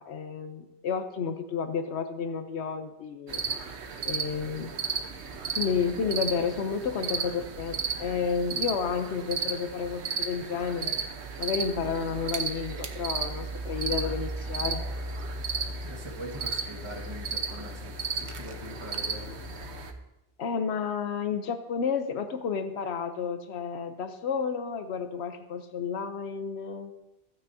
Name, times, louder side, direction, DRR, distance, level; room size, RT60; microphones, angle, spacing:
voice 1, 0.0-3.4 4.0-4.7 5.5-10.9 11.4-14.8 20.4-26.9, left 6 dB, 80° left, 8 dB, 1.0 m, -31 dB
sound 1, 3.3-19.9, right 4 dB, 85° right, 1.2 m, -34 dB
voice 2, 15.8-19.4, right 1 dB, 25° right, -3 dB, 1.7 m, -42 dB
16.0 x 8.8 x 2.7 m, 0.92 s
omnidirectional pair, 1.1 m